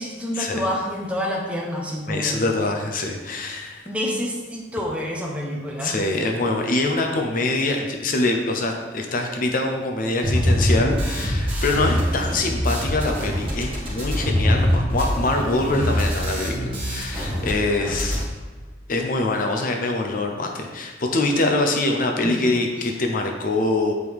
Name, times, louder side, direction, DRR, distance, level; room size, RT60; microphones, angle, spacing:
voice 1, 0.0-2.4 3.8-6.0 22.2-22.4, equal, 5° right, -1 dB, 1.0 m, -28 dB
voice 2, 2.1-3.8 5.8-18.2 18.9-23.9, left 2 dB, 50° left, 2 dB, 0.7 m, -24 dB
sound 1, 10.2-17.5 17.8-18.2, equal, 30° right, 1.9 m, -23 dB
8.2 x 4.7 x 3.6 m, 1.3 s
head